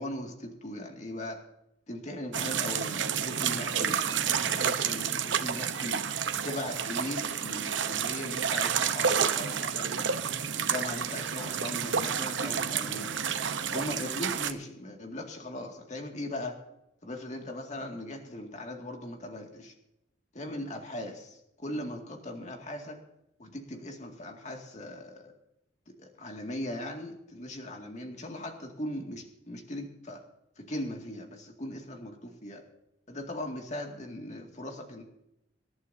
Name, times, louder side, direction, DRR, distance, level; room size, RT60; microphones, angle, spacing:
voice 1, 0.0-1.4 1.9-6.0 6.3-10.1 10.5-13.2 13.7-16.6 17.0-19.7 20.3-23.0 23.4-25.3 25.9-30.2 30.6-32.7 33.1-35.0, left 1 dB, 40° left, 3 dB, 2.2 m, -39 dB
sound 1, 2.3-14.5, right 7 dB, 75° right, 0.9 m, -30 dB
26.0 x 11.0 x 2.7 m, 0.84 s
head